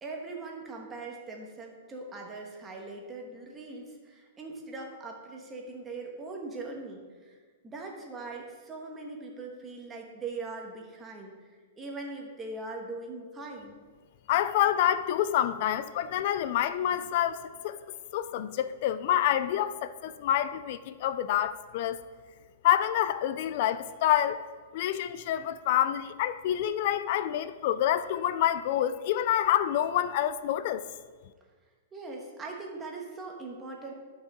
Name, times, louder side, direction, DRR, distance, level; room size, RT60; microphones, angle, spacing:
voice 1, 0.0-13.8 31.9-33.9, right 3 dB, 15° right, 1.3 m, -41 dB
voice 2, 14.3-17.8 18.1-22.0 22.6-24.4 24.7-30.8, left 11 dB, 50° left, 0.3 m, -27 dB
12.0 x 5.4 x 3.6 m
hypercardioid pair, 150°, 0 cm